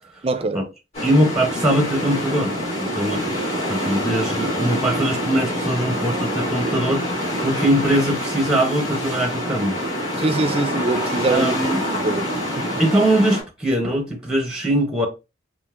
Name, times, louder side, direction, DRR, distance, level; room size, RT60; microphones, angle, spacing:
voice 1, 0.2-0.6 10.2-11.6 12.0-12.7, right 2 dB, 30° right, 0.4 m, -23 dB
sound 1, 0.9-13.4, equal, 35° left, 2.2 m, -26 dB
voice 2, 1.0-7.0 7.4-9.8 11.3-11.8 12.8-15.1, right 1 dB, 5° right, 0.8 m, -21 dB
5.4 x 2.6 x 2.5 m
head